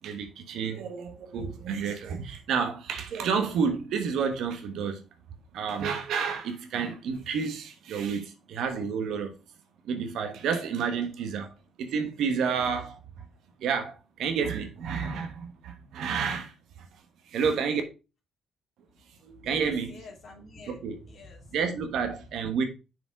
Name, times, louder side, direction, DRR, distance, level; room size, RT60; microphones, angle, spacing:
voice 1, 0.0-5.0 5.5-9.4 9.8-11.5 11.8-13.0 13.6-16.9 17.3-17.8 19.2-20.0 20.7-21.0 21.5-22.6, right 6 dB, 80° right, 1.2 m, -30 dB
voice 2, 19.4-21.6, left 3 dB, 55° left, 2.6 m, -47 dB
6.1 x 5.0 x 4.7 m
cardioid pair, 90°, 0 cm